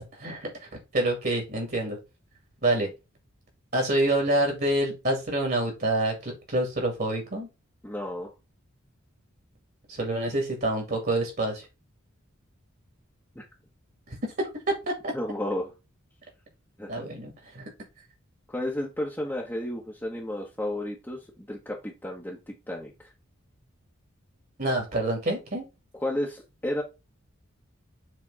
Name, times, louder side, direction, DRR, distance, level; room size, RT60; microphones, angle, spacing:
voice 1, 0.0-2.0 2.6-2.9 3.7-7.5 9.9-11.7 14.1-15.1 16.9-17.6 24.6-25.6, right 1 dB, 50° right, 2 dB, 2.3 m, -27 dB
voice 2, 7.8-8.3 13.3-13.4 15.1-15.7 16.8-16.9 18.5-23.1 26.0-26.8, left 1 dB, 10° left, -2 dB, 1.1 m, -32 dB
7.4 x 3.4 x 4.7 m, 0.27 s
head